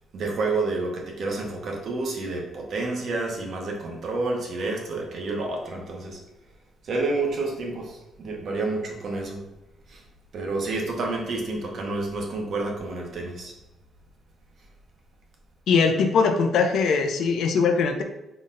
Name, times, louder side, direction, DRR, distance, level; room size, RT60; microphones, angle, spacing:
voice 1, 0.1-6.2 6.8-9.4 9.9-10.0 10.3-13.5, right 3 dB, 60° right, 1 dB, 0.9 m, -29 dB
voice 2, 15.7-18.0, left 5 dB, 75° left, 6 dB, 0.5 m, -21 dB
3.9 x 3.9 x 2.5 m, 0.96 s
cardioid pair, 90°, 0 cm